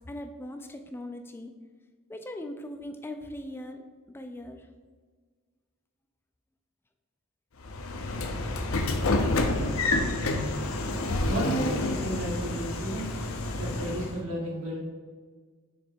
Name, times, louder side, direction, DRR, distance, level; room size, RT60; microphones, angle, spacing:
voice 1, 0.1-1.5 2.1-3.8 4.1-4.7, left 1 dB, 10° left, 5 dB, 0.3 m, -39 dB
Train / Sliding door, 7.6-14.2, left 2 dB, 70° left, 0.6 m, -28 dB
voice 2, 11.3-13.1 13.6-14.8, right 1 dB, 80° right, -3 dB, 1.7 m, -33 dB
6.7 x 3.2 x 4.5 m, 1.5 s
head